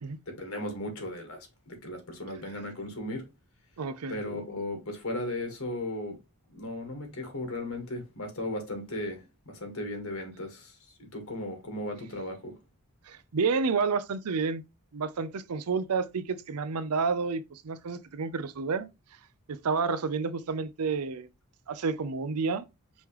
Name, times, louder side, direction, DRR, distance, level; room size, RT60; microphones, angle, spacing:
voice 1, 0.3-3.2 4.1-6.2 6.5-12.5, left 1 dB, 65° left, 1.5 m, -36 dB
voice 2, 3.8-4.2 13.1-14.6 14.9-18.9 19.5-21.3 21.7-22.7, right 5 dB, 90° right, 0.6 m, -30 dB
5.5 x 3.1 x 3.1 m
head